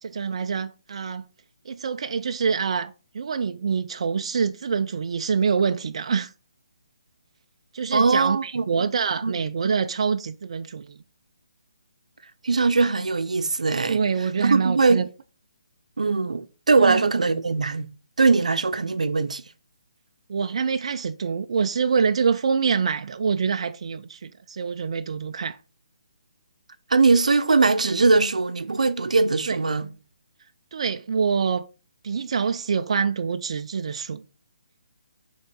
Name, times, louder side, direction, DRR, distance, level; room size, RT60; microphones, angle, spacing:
voice 1, 0.0-1.2 1.7-6.3 7.7-11.0 13.9-15.1 16.8-17.1 20.3-25.6 29.5-29.6 30.7-31.6 32.0-34.2, right 6 dB, 55° right, 0.5 m, -25 dB
voice 2, 7.9-8.6 9.2-9.4 12.4-14.0 14.4-15.0 16.0-17.9 18.2-19.4 26.9-29.9, right 4 dB, 85° right, 0.7 m, -21 dB
5.4 x 3.7 x 5.3 m
hypercardioid pair, 160°, 4 cm